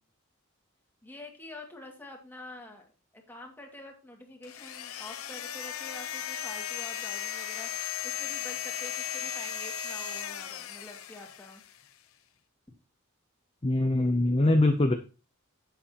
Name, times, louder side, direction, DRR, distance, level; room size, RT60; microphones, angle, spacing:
voice 1, 1.0-11.6, left 1 dB, 10° left, 1 dB, 2.1 m, -47 dB
sound 1, 4.4-11.8, left 9 dB, 85° left, 0.8 m, -36 dB
voice 2, 13.6-14.9, left 2 dB, 25° left, 6 dB, 0.6 m, -23 dB
11.0 x 8.0 x 2.9 m, 0.34 s
head